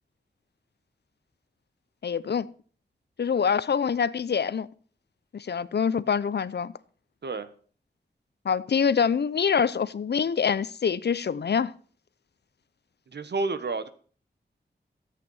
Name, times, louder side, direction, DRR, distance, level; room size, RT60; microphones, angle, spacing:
voice 1, 2.0-2.5 3.2-4.7 5.3-6.7 8.4-11.7, left 6 dB, 70° left, 0.7 m, -25 dB
voice 2, 13.1-13.9, right 3 dB, 70° right, 1.2 m, -30 dB
14.0 x 8.3 x 5.6 m
wide cardioid pair, 110°, 18 cm